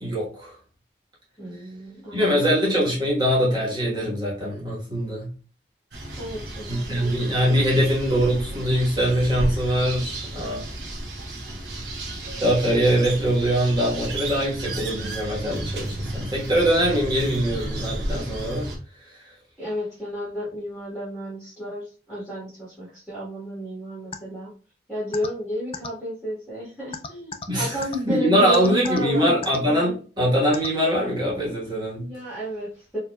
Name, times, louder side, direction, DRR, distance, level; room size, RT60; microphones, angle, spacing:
voice 1, 0.0-0.5 2.1-5.3 6.7-10.6 12.4-18.7 19.1-19.2 27.5-27.8 28.0-32.1, equal, 25° right, -4 dB, 1.4 m, -23 dB
voice 2, 1.4-2.6 6.2-7.1 19.6-24.5 24.9-29.3 32.0-33.0, right 1 dB, ahead, -9 dB, 1.6 m, -32 dB
sound 1, 5.9-18.8, right 1 dB, 75° right, 0.9 m, -33 dB
sound 2, 24.1-24.2 25.1-25.3 25.7-25.9 26.9-27.5 27.8-28.0 28.5-29.0 29.4-29.6 30.5-30.7, left 5 dB, 30° left, 0.3 m, -32 dB
4.3 x 2.7 x 2.4 m, 0.37 s
head